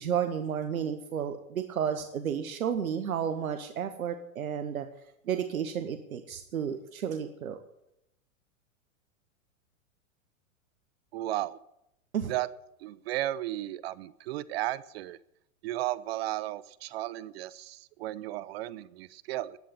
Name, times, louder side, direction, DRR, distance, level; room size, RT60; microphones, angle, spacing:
voice 1, 0.0-4.9 5.3-7.6 12.1-12.3, right 8 dB, 80° right, 8 dB, 1.1 m, -32 dB
voice 2, 11.1-11.6 12.3-12.5 12.8-15.2 15.6-19.6, right 15 dB, 50° right, 19 dB, 0.5 m, -34 dB
11.0 x 8.4 x 9.6 m, 0.84 s
hypercardioid pair, 110°, 42 cm